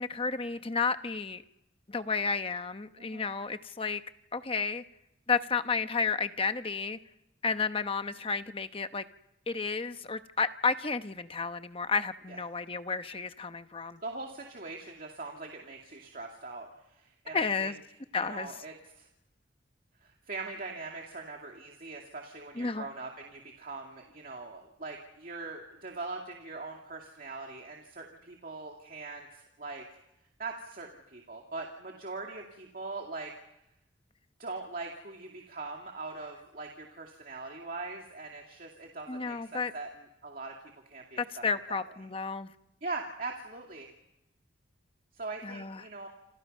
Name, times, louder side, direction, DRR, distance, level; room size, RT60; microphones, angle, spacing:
voice 1, 0.0-1.4 1.9-4.0 4.3-4.8 5.3-7.0 7.4-9.0 9.5-14.0 17.3-17.8 18.1-18.5 22.6-22.9 39.1-39.7 41.2-42.5 45.4-45.8, left 5 dB, 30° left, 10 dB, 0.9 m, -32 dB
voice 2, 14.0-17.7 18.2-19.1 20.0-30.0 30.4-33.3 34.4-39.9 40.2-41.4 41.7-41.8 42.8-43.9 45.1-46.1, right 3 dB, 50° right, 1 dB, 2.4 m, -41 dB
28.5 x 28.0 x 5.5 m, 0.86 s
head